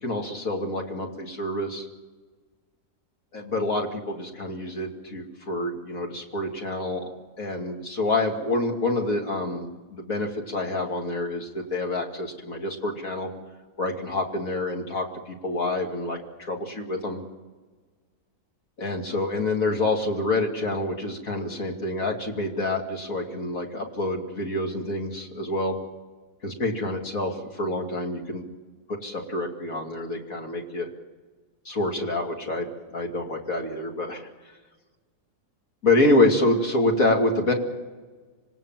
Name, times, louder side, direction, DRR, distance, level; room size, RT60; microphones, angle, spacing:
voice 1, 0.0-1.9 3.3-7.1 7.4-13.3 13.8-17.2 18.8-25.8 26.4-28.4 28.9-30.9 31.6-34.3 35.8-37.5, left 2 dB, 60° left, 1 dB, 3.0 m, -27 dB
26.0 x 18.5 x 7.5 m, 1.4 s
omnidirectional pair, 1.7 m